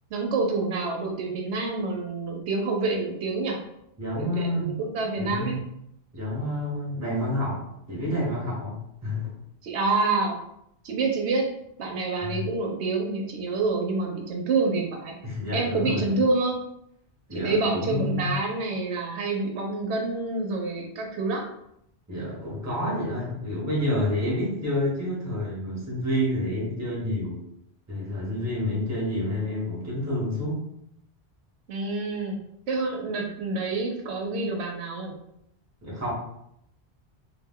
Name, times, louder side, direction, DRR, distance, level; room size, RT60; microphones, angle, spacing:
voice 1, 0.1-3.6 4.2-5.5 9.6-10.4 10.8-11.5 11.8-15.1 15.5-16.6 17.3-21.4 31.7-32.4 32.7-35.1, right 3 dB, 80° right, 1 dB, 0.9 m, -27 dB
voice 2, 4.0-4.7 5.2-5.6 6.1-9.3 12.2-12.5 15.2-16.1 17.3-18.4 22.1-27.4 27.9-30.6 35.8-36.1, left 1 dB, 15° right, -4 dB, 0.7 m, -29 dB
2.3 x 2.1 x 3.5 m, 0.76 s
omnidirectional pair, 1.1 m